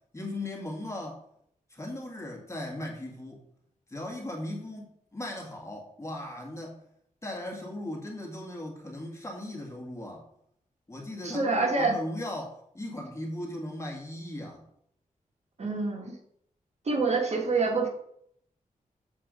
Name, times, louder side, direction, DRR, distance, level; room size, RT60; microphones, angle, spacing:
voice 1, 0.1-1.2 1.7-3.4 3.9-6.8 7.2-10.3 10.9-14.6, left 1 dB, 20° left, -1 dB, 1.8 m, -38 dB
voice 2, 11.2-11.9 15.6-16.2 16.8-17.9, right 3 dB, 55° right, 1 dB, 1.7 m, -26 dB
7.5 x 4.7 x 5.1 m, 0.70 s
wide cardioid pair, 115°, 14 cm